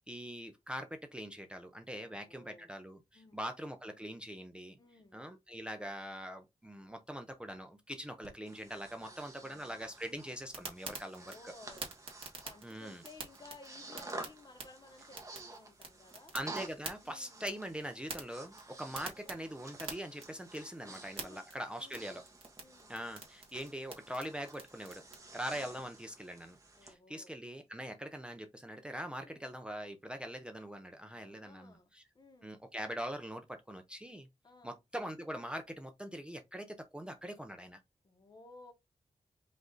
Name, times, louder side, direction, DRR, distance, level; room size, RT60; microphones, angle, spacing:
voice 1, 0.1-4.8 5.1-11.5 12.6-13.0 16.3-22.2 22.9-25.0 25.3-32.0 32.4-34.3 34.6-37.8, equal, 10° right, 0.5 m, -43 dB
voice 2, 1.9-2.7 3.1-3.4 4.8-5.3 8.9-9.8 11.1-11.9 12.4-16.3 17.0-17.6 19.2-19.6 20.8-21.5 21.8-22.1 22.6-23.0 26.7-27.3 29.2-29.5 31.1-32.7 34.4-34.8 38.0-38.7, left 3 dB, 35° left, 1.0 m, -58 dB
Breathing, 8.2-26.9, right 2 dB, 25° right, 1.1 m, -51 dB
sound 1, 10.5-25.2, right 4 dB, 50° right, 1.6 m, -49 dB
5.1 x 2.6 x 3.8 m
wide cardioid pair, 160°, 12 cm